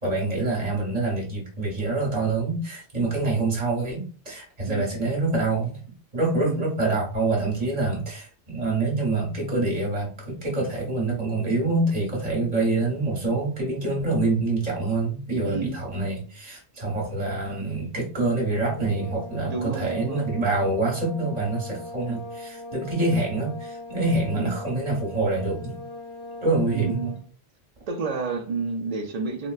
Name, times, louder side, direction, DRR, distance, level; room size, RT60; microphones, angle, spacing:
voice 1, 0.0-5.8 6.1-25.8 26.4-27.1, right 2 dB, 35° right, -3 dB, 1.3 m, -26 dB
voice 2, 15.4-15.8 19.5-20.3 24.4-24.6 26.7-27.2 27.9-29.5, right 4 dB, 55° right, 4 dB, 0.4 m, -30 dB
sound 1, 18.5-27.3, left 2 dB, 80° left, 1.0 m, -40 dB
3.9 x 2.1 x 2.3 m, 0.39 s
omnidirectional pair, 1.2 m